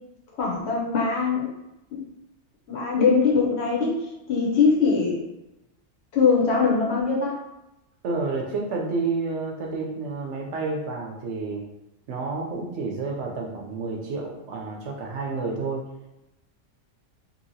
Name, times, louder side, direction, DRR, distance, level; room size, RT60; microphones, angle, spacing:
voice 1, 0.4-1.5 1.9-2.0 2.7-4.0 4.3-5.2 6.1-7.4, left 5 dB, 60° left, -2 dB, 0.8 m, -22 dB
voice 2, 8.0-11.6 12.1-15.9, right 3 dB, 70° right, 0 dB, 0.8 m, -30 dB
2.8 x 2.7 x 2.7 m, 0.92 s
omnidirectional pair, 1.4 m